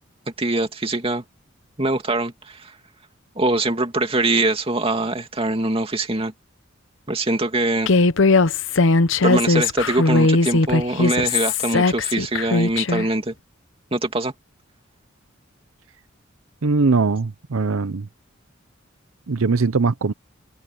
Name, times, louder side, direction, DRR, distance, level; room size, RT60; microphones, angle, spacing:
voice 1, 0.4-1.2 1.8-2.8 3.4-6.3 7.1-7.9 9.2-13.3 13.9-14.3, right 2 dB, 30° right, 2.5 m, -23 dB
Human voice, 7.9-13.1, left 3 dB, 65° left, 0.8 m, -19 dB
voice 2, 16.6-18.1 19.3-20.1, right 4 dB, 90° right, 0.7 m, -20 dB
head